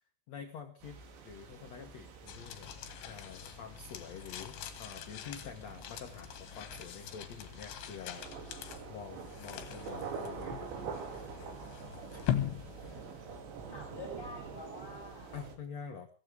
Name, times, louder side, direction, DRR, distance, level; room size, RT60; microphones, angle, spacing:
voice 1, 0.3-2.7 3.0-8.3 8.9-10.7 12.1-12.2 15.3-16.1, left 6 dB, 65° left, 4 dB, 1.7 m, -47 dB
sound 1, 0.8-15.6, right 6 dB, 75° right, 4.8 m, -46 dB
sound 2, 2.3-13.6, left 11 dB, 80° left, 3.7 m, -42 dB
voice 2, 12.8-15.4, left 2 dB, 5° left, -1 dB, 7.3 m, -48 dB
24.5 x 15.5 x 3.5 m, 0.38 s
omnidirectional pair, 5.1 m